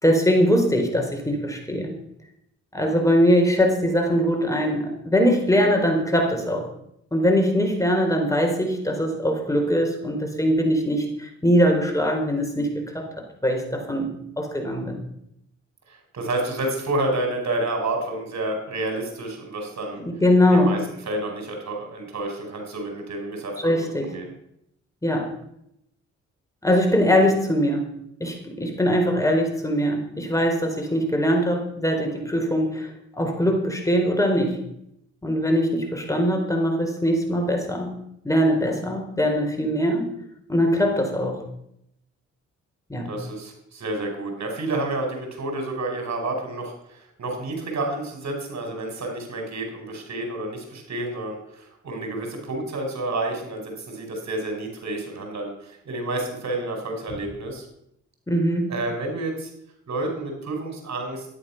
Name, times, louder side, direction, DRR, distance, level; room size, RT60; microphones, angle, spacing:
voice 1, 0.0-1.9 2.7-6.7 7.1-13.1 13.4-15.0 20.1-20.7 23.6-24.1 25.0-25.3 26.6-27.8 28.2-34.6 35.2-38.0 38.2-40.1 40.5-41.4 42.9-43.1 58.3-58.7, equal, 10° left, 2 dB, 4.4 m, -22 dB
voice 2, 15.9-20.0 20.4-20.8 21.1-24.3 43.1-57.7 58.7-59.5 59.9-61.3, right 2 dB, 65° right, 3 dB, 5.3 m, -30 dB
13.0 x 11.0 x 6.0 m, 0.75 s
supercardioid pair, 55°, 30 cm